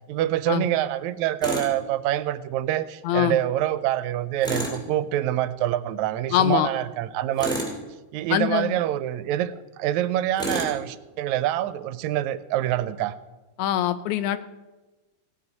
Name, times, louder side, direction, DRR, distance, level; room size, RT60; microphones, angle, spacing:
voice 1, 0.1-7.6 8.1-13.2, right 13 dB, 85° right, 15 dB, 1.9 m, -26 dB
Tools, 1.4-1.7 4.4-4.8 7.4-7.8 10.4-10.8, equal, ahead, 2.4 m, -29 dB
voice 2, 3.0-3.4 6.3-6.7 8.3-8.7 13.6-14.4, left 12 dB, 85° left, 12 dB, 2.1 m, -23 dB
16.5 x 9.7 x 5.3 m, 1.2 s
omnidirectional pair, 3.3 m